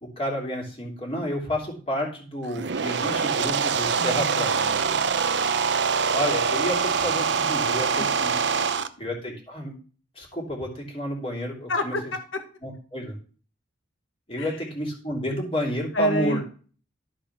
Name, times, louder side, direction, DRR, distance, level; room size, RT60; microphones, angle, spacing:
voice 1, 0.0-4.5 6.1-8.4 9.0-9.7 10.1-11.9 12.6-13.1 14.3-16.4, equal, 30° left, 0 dB, 2.9 m, -30 dB
sound 1, 2.4-8.9, right 5 dB, 60° right, 0.6 m, -24 dB
voice 2, 4.0-5.2 7.9-8.1 11.7-12.2 14.4-14.6 15.9-16.4, left 1 dB, 80° left, 7 dB, 1.3 m, -29 dB
12.0 x 5.1 x 5.9 m, 0.41 s
head